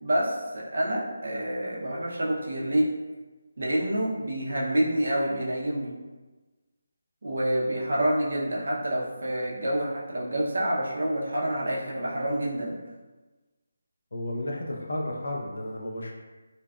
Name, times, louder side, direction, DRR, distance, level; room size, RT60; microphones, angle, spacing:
voice 1, 0.0-2.9 3.6-5.9 7.2-12.8, right 1 dB, 65° right, -3 dB, 0.5 m, -27 dB
voice 2, 14.1-16.1, left 1 dB, 60° left, 0 dB, 0.4 m, -32 dB
2.5 x 2.2 x 2.2 m, 1.2 s
figure-of-eight pair, 175°, 0 cm